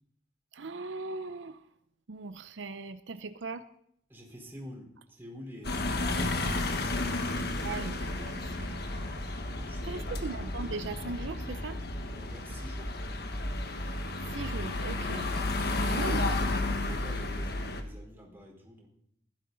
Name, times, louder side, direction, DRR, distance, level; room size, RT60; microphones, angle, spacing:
voice 1, 0.5-1.6 2.1-3.6 7.6-9.0 9.8-11.8 14.3-15.3 15.9-16.3, right 3 dB, 85° right, 11 dB, 0.6 m, -39 dB
voice 2, 4.1-6.8 9.5-10.4 12.1-13.0 15.0-15.2 16.7-18.9, equal, 10° right, -2 dB, 4.2 m, -48 dB
sound 1, 5.6-17.8, left 2 dB, 60° left, 1.4 m, -32 dB
15.5 x 12.0 x 4.0 m, 0.70 s
head